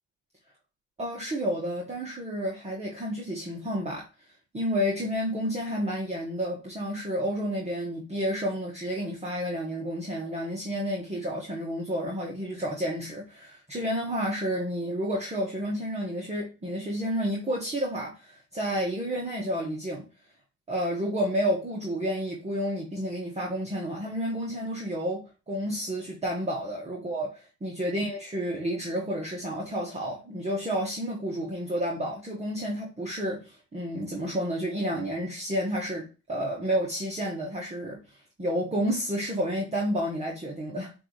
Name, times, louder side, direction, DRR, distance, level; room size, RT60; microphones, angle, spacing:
voice 1, 1.0-4.1 4.5-20.0 20.7-27.3 27.6-38.0 38.4-40.9, equal, 20° right, 1.2 m, -30 dB
5.9 x 2.7 x 3.0 m
cardioid pair, 90°, 30 cm